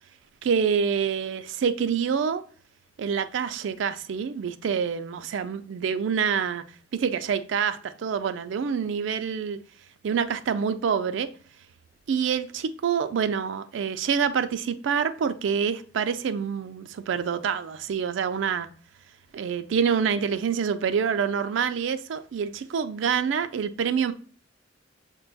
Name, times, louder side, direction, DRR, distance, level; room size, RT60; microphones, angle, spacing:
voice 1, 0.4-2.4 3.0-6.6 6.9-9.6 10.0-11.3 12.1-18.7 19.3-24.1, right 7 dB, 75° right, 0.4 m, -26 dB
6.1 x 2.2 x 3.9 m
head